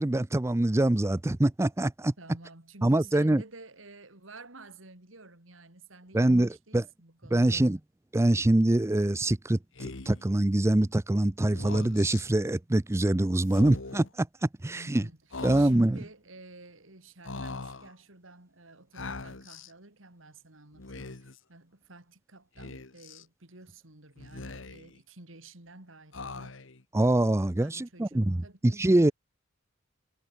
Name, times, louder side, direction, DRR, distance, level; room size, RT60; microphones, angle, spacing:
voice 1, 0.0-2.1 2.8-3.4 6.1-6.8 7.3-7.8 8.1-15.0 15.4-16.0 26.9-29.1, right 1 dB, 15° right, 0.5 m, -24 dB
voice 2, 2.2-7.7 14.8-26.6 27.6-29.1, right 3 dB, 75° right, 3.6 m, -51 dB
Speech, 9.7-10.3 11.4-12.2 13.4-14.1 15.3-16.0 17.2-17.9 18.9-19.7 20.7-21.4 22.6-23.2 24.2-25.0 26.1-26.8, left 3 dB, 70° left, 1.6 m, -41 dB
head